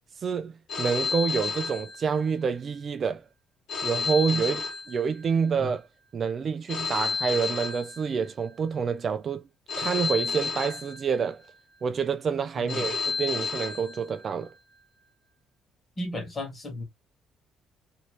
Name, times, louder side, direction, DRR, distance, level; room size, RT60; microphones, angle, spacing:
voice 1, 0.2-3.2 3.8-5.9 6.1-9.4 9.8-11.4 11.8-14.5, right 6 dB, 35° right, 0.3 m, -28 dB
Telephone, 0.7-2.6 3.7-5.6 6.7-8.6 9.7-11.5 12.7-14.5, left 5 dB, 55° left, 1.4 m, -32 dB
voice 2, 16.0-16.8, left 1 dB, 20° left, 1.6 m, -34 dB
3.0 x 2.9 x 2.9 m
cardioid pair, 160°, 0 cm